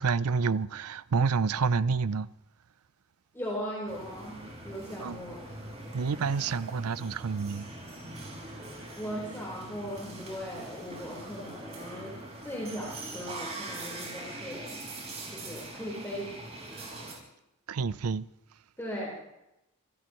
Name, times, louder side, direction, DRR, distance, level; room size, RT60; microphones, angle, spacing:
voice 1, 0.0-2.3 5.0-5.2 5.9-7.7 17.7-18.3, right 5 dB, 90° right, 0.5 m, -28 dB
voice 2, 3.3-5.4 9.0-12.1 12.4-14.8 15.3-16.3 16.7-17.0 18.8-19.1, equal, 10° left, 4.3 m, -38 dB
sound 1, 3.9-17.1, right 2 dB, 30° right, 5.3 m, -43 dB
26.5 x 17.0 x 3.1 m
head